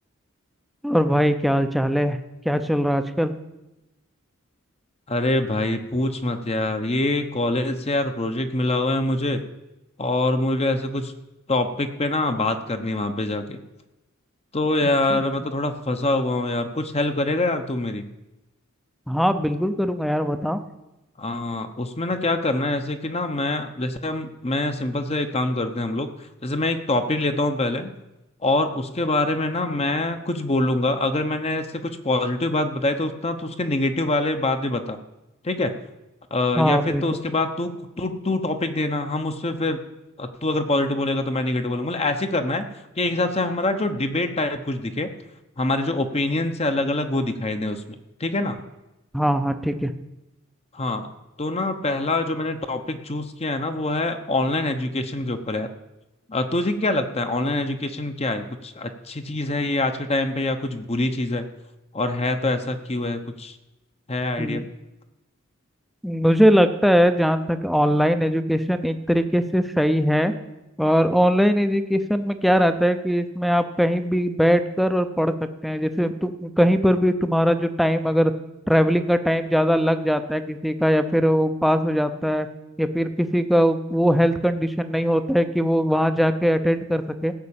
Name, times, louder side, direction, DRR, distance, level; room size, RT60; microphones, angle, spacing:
voice 1, 0.8-2.2 2.4-3.3 15.1-15.2 19.1-20.6 36.6-37.0 49.1-49.9 64.4-64.7 66.0-70.3 70.8-75.3 75.6-78.3 78.7-82.5 82.8-87.3, equal, ahead, 8 dB, 0.7 m, -21 dB
voice 2, 5.1-9.4 10.0-11.1 11.5-13.6 14.5-18.1 21.2-26.1 26.4-27.9 28.4-35.0 35.4-35.7 36.3-37.7 38.0-39.8 40.2-42.6 43.0-45.1 45.6-48.6 50.7-51.1 51.4-55.7 56.3-61.5 61.9-63.5 64.1-64.7, left 2 dB, 30° left, 7 dB, 0.9 m, -25 dB
15.5 x 6.2 x 8.7 m, 0.98 s
head